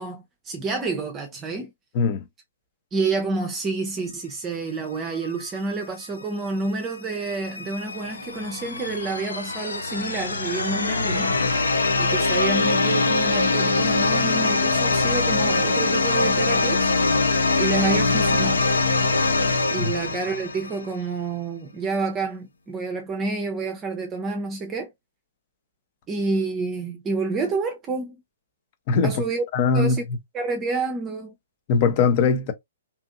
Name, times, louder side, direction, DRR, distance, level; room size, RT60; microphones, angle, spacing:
voice 1, 0.0-1.7 2.9-11.3 12.0-16.9 17.6-18.7 19.7-24.9 26.1-28.2 29.0-29.4 29.7-30.1 30.3-31.3, right 3 dB, 20° right, 0.6 m, -28 dB
sound 1, 7.1-20.9, left 3 dB, 85° left, 0.6 m, -23 dB
voice 2, 29.5-30.0 31.7-32.5, left 5 dB, 40° left, 0.7 m, -20 dB
2.8 x 2.6 x 2.4 m
hypercardioid pair, 130°, 0 cm